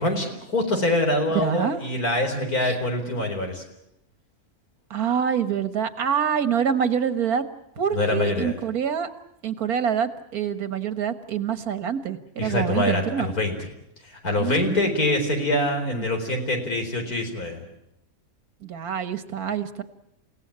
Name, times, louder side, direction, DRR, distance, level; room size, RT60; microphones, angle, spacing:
voice 1, 0.0-3.6 7.9-8.5 12.4-13.5 14.0-17.7, left 1 dB, 90° left, 4 dB, 4.9 m, -24 dB
voice 2, 1.3-1.8 2.6-2.8 4.9-7.4 7.8-9.1 9.4-13.3 14.4-16.0 18.6-19.8, right 8 dB, 90° right, 11 dB, 1.9 m, -26 dB
29.0 x 17.0 x 8.8 m, 0.82 s
omnidirectional pair, 1.5 m